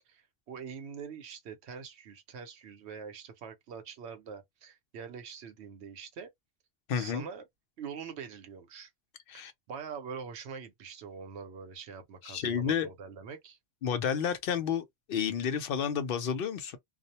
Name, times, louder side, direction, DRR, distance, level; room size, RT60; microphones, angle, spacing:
voice 1, 0.1-6.3 6.9-7.4 7.8-8.9 9.3-13.6, right 6 dB, 85° right, 0.9 m, -44 dB
voice 2, 6.9-7.3 9.3-9.5 12.2-12.9 13.8-16.8, left 7 dB, 65° left, 0.7 m, -31 dB
2.3 x 2.0 x 2.7 m
omnidirectional pair, 1.1 m